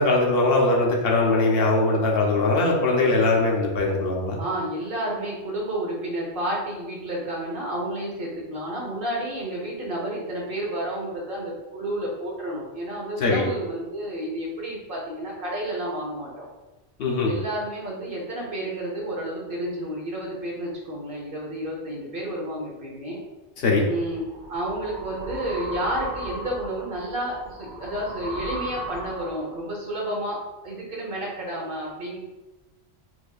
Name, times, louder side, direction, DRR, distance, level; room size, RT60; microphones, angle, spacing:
voice 1, 0.0-4.4 13.2-13.4 17.0-17.3 23.6-23.9, left 2 dB, 65° left, -1 dB, 0.8 m, -21 dB
voice 2, 4.4-16.5 17.2-23.2 23.8-24.2 24.5-32.2, right 1 dB, 55° right, -3 dB, 1.0 m, -31 dB
sound 1, 23.9-29.6, right 1 dB, 25° right, 1.2 m, -37 dB
4.5 x 2.6 x 2.3 m, 1.1 s
omnidirectional pair, 1.1 m